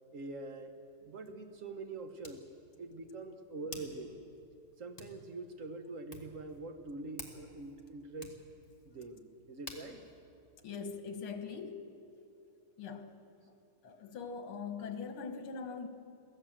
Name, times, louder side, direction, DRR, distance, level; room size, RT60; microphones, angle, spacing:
voice 1, 0.1-0.7 1.0-2.4 2.8-4.2 4.8-8.3 8.8-10.0, right 3 dB, 45° right, 6 dB, 1.4 m, -44 dB
Hands, 0.6-11.4, left 2 dB, 20° left, 1.9 m, -55 dB
voice 2, 10.6-11.8 12.8-13.1 13.8-15.9, left 5 dB, 75° left, 7 dB, 2.3 m, -41 dB
23.0 x 16.5 x 7.5 m, 2.6 s
omnidirectional pair, 2.4 m